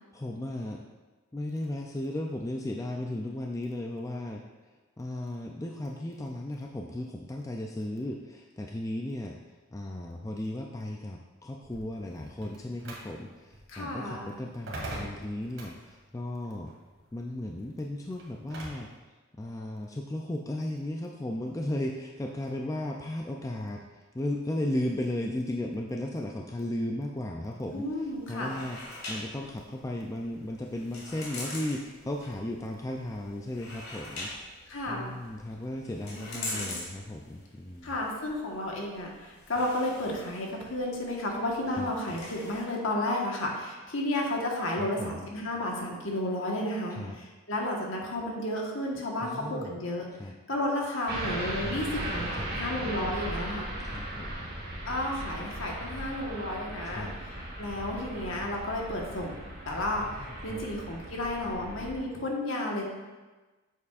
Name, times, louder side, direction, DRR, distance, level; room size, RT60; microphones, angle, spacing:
voice 1, 0.1-0.8 1.3-4.4 5.0-16.7 17.1-18.9 19.4-28.8 29.1-34.3 34.9-38.0 41.8-41.9 44.7-45.3 46.9-47.2 49.2-49.7 50.2-50.4 51.6-52.9 53.9-54.5 56.8-57.2 60.0-60.6, left 1 dB, 15° left, 1 dB, 0.3 m, -35 dB
sound 1, 11.6-18.9, right 1 dB, 70° right, 2.1 m, -44 dB
voice 2, 13.7-14.4 27.7-28.6 34.7-35.1 36.2-36.8 37.8-50.0 50.5-53.7 54.9-62.8, left 1 dB, 70° left, -1 dB, 1.4 m, -32 dB
sound 2, 27.6-42.6, left 2 dB, 90° left, 2.3 m, -44 dB
sound 3, 51.1-62.0, right 1 dB, 45° right, 1.5 m, -37 dB
8.4 x 7.0 x 2.5 m, 1.2 s
head